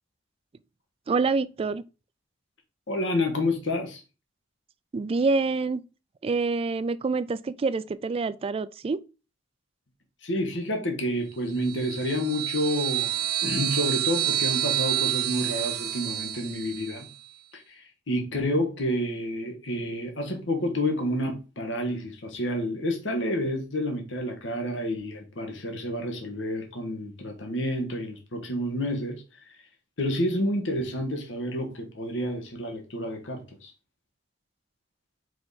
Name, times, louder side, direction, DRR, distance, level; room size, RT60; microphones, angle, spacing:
voice 1, 1.1-1.8 4.9-5.8 6.2-9.0, right 4 dB, 30° right, 0.3 m, -26 dB
voice 2, 2.9-4.0 10.2-17.1 17.5-29.2 29.5-29.6 30.0-33.7, left 1 dB, 80° left, 1.4 m, -29 dB
sound 1, 11.6-17.1, right 13 dB, 60° right, 0.7 m, -28 dB
4.8 x 4.8 x 4.1 m
head